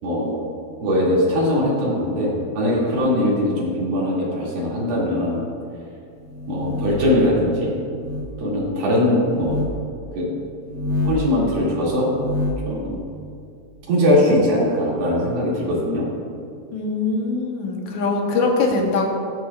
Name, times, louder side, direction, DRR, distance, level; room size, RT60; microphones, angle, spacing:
voice 1, 0.0-0.4 0.8-5.4 6.5-7.7 8.4-9.6 10.1-10.4 11.0-12.1 12.7-13.0 13.9-16.1, left 1 dB, 75° right, -6 dB, 4.3 m, -21 dB
sound 1, 6.2-7.2 7.9-8.3 9.3-9.7 10.6-11.3 12.0-12.7, left 2 dB, 45° right, 1.4 m, -27 dB
voice 2, 16.7-19.1, left 3 dB, 65° left, 1 dB, 2.1 m, -22 dB
14.0 x 12.0 x 2.4 m, 2.3 s
omnidirectional pair, 4.2 m